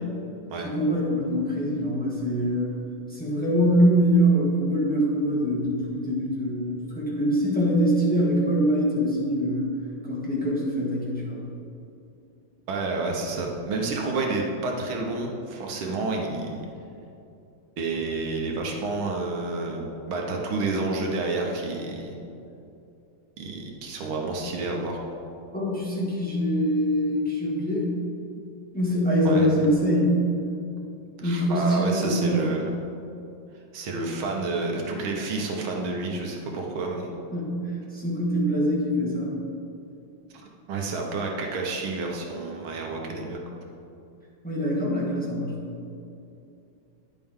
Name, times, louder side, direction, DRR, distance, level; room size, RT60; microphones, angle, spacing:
voice 1, 0.6-2.7 3.1-9.7 10.0-11.4 25.5-27.9 28.7-30.2 31.2-32.4 37.3-37.6 37.9-39.3 44.4-45.8, equal, 5° left, -6 dB, 1.6 m, -24 dB
voice 2, 12.7-16.7 17.8-22.1 23.4-25.0 29.3-29.5 31.2-32.7 33.7-37.1 40.7-43.4, right 3 dB, 80° right, 0 dB, 1.9 m, -29 dB
10.0 x 7.6 x 3.7 m, 2.7 s
omnidirectional pair, 2.2 m